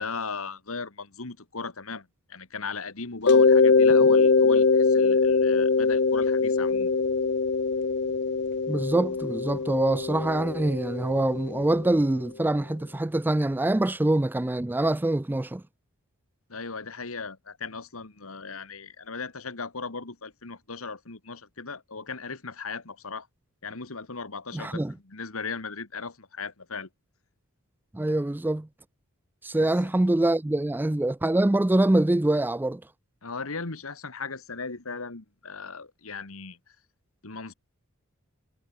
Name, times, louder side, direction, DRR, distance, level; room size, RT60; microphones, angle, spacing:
voice 1, 0.0-6.9 16.5-23.3 23.6-26.9 29.6-29.7 33.2-36.6 37.2-37.5, left 4 dB, 70° left, 1.9 m, -37 dB
Mallet percussion, 3.3-11.9, left 4 dB, 50° left, 0.7 m, -22 dB
voice 2, 8.7-15.6 24.5-24.9 27.9-28.7 29.4-32.8, right 1 dB, 10° right, 0.3 m, -24 dB
head